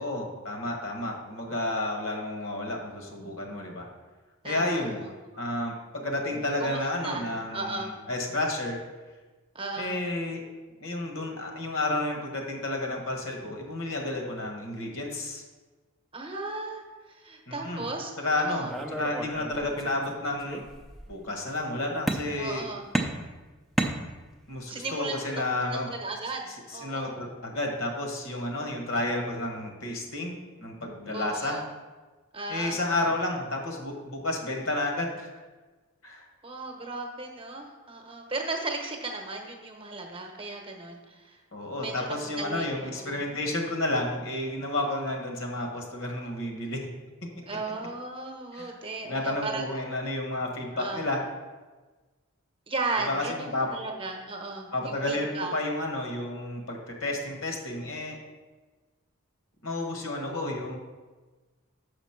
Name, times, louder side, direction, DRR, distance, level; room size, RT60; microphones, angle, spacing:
voice 1, 0.0-3.9 4.4-5.0 5.4-8.8 9.8-10.4 10.8-15.4 17.5-17.8 18.2-18.7 19.0-20.6 21.1-22.7 24.5-25.9 26.7-31.6 32.5-35.3 36.0-36.2 41.5-46.9 48.5-48.7 49.0-51.2 53.1-53.7 54.7-58.2 59.6-60.8, left 2 dB, 65° left, 1 dB, 1.4 m, -31 dB
voice 2, 4.4-5.1 6.6-7.9 9.5-10.0 16.1-18.7 22.4-22.9 24.7-25.4 25.9-27.2 31.1-31.6 32.3-32.8 36.4-41.4 41.8-43.2 47.5-49.6 50.7-51.1 52.7-55.5, right 3 dB, 25° right, 2 dB, 0.9 m, -36 dB
sound 1, 18.7-20.1 20.4-21.1 22.1-22.6 22.9-24.5, right 1 dB, ahead, 0.5 m, -32 dB
7.0 x 5.2 x 5.8 m, 1.3 s
head